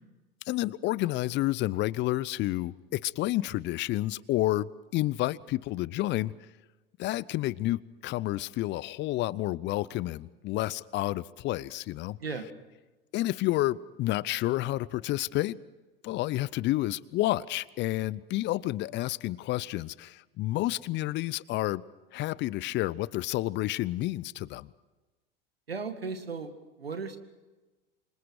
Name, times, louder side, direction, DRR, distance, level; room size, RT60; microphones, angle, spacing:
voice 1, 0.5-6.3 7.0-12.2 13.1-15.6 16.0-21.8 22.1-24.7, left 16 dB, 40° left, 22 dB, 0.7 m, -30 dB
voice 2, 25.7-27.2, right 4 dB, 90° right, 9 dB, 2.1 m, -36 dB
28.0 x 25.5 x 4.8 m, 1.2 s
figure-of-eight pair, 85°, 29 cm